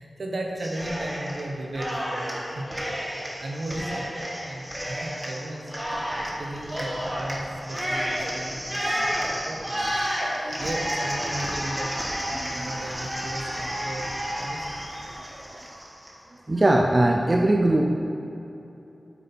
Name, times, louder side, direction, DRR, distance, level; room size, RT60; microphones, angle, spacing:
voice 1, 0.0-2.7 3.4-4.1 4.4-5.7 6.4-9.9 10.6-12.0 12.2-14.1 14.4-14.9, right 1 dB, 70° right, 0 dB, 1.1 m, -35 dB
Cheering, 0.6-1.4 1.7-16.1, equal, 10° right, 1.3 m, -31 dB
voice 2, 12.3-12.7 15.3-15.6 16.5-17.9, right 1 dB, 30° right, 1 dB, 0.5 m, -22 dB
8.4 x 6.8 x 4.4 m, 2.9 s
wide cardioid pair, 95°, 0 cm